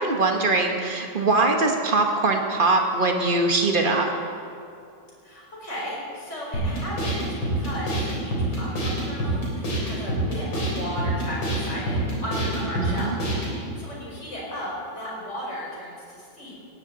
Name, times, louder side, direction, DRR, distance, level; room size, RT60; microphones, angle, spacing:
voice 1, 0.0-4.1 12.8-13.2, right 3 dB, 30° right, 2 dB, 1.4 m, -22 dB
voice 2, 5.2-13.2 13.8-16.7, equal, 35° left, -5 dB, 4.9 m, -35 dB
sound 1, 6.5-13.6, right 1 dB, 75° left, 4.7 m, -27 dB
18.0 x 16.5 x 4.1 m, 2.5 s
omnidirectional pair, 2.1 m